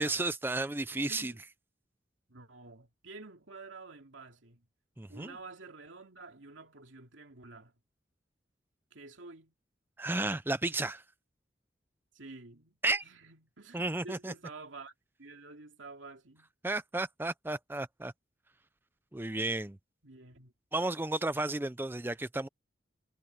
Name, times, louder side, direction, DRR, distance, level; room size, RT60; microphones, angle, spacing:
voice 1, 0.0-1.3 5.0-5.3 10.0-11.0 12.8-13.0 13.7-14.3 16.6-18.1 19.1-19.8 20.7-22.5, right 2 dB, 10° right, 0.5 m, -33 dB
voice 2, 1.0-1.4 2.3-4.7 5.1-7.7 8.9-9.5 12.1-14.9 15.2-16.5 20.0-20.5, right 3 dB, 90° right, 2.6 m, -50 dB
head